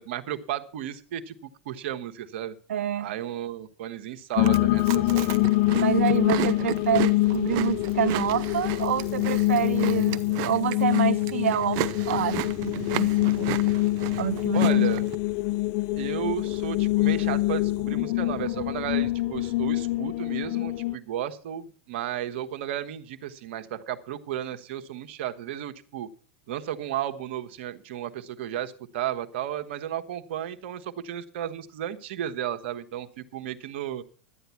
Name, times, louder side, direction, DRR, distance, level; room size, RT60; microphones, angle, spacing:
voice 1, 0.0-1.3 1.6-2.5 3.0-5.3 14.5-15.0 16.0-26.1 26.5-33.1 33.3-34.0, right 11 dB, 70° right, 1.2 m, -33 dB
voice 2, 2.7-3.1 5.8-13.6 14.2-14.9, right 10 dB, 85° right, 0.5 m, -28 dB
Chewing mastication, 4.3-15.1, right 15 dB, 55° right, 0.8 m, -35 dB
sound 1, 4.4-20.9, left 19 dB, 55° left, 0.5 m, -25 dB
12.5 x 9.2 x 5.7 m
hypercardioid pair, 115°, 7 cm